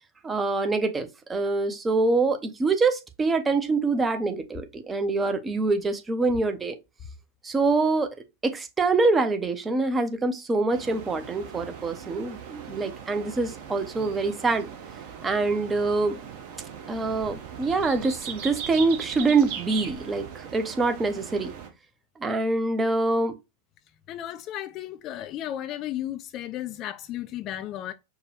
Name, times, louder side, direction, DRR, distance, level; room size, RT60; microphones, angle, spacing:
voice 1, 0.2-6.8 7.4-8.1 8.4-14.7 15.2-16.2 16.9-21.5 22.2-23.3, right 3 dB, 15° right, 0.6 m, -25 dB
sound 1, 10.7-21.7, right 8 dB, 45° right, 1.0 m, -39 dB
voice 2, 24.1-27.9, left 12 dB, 35° left, 0.3 m, -34 dB
4.6 x 2.2 x 3.1 m
figure-of-eight pair, 90°, 0 cm